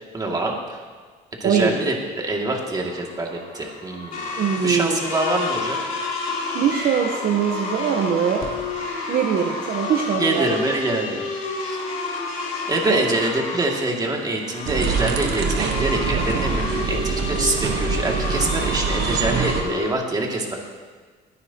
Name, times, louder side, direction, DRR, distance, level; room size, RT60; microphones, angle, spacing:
voice 1, 0.1-0.8 1.4-4.3 4.6-5.8 10.2-11.2 11.6-11.8 12.6-20.6, right 2 dB, 25° right, -1 dB, 2.4 m, -25 dB
sound 1, 2.7-19.9, left 3 dB, 55° left, 3.2 m, -30 dB
voice 2, 4.4-5.0 6.5-8.4 9.1-10.5 12.9-13.0, right 7 dB, 60° right, 2 dB, 1.1 m, -22 dB
sound 2, 14.6-19.6, right 6 dB, 80° right, 1.3 m, -25 dB
22.5 x 9.7 x 3.0 m, 1.5 s
cardioid pair, 110°, 17 cm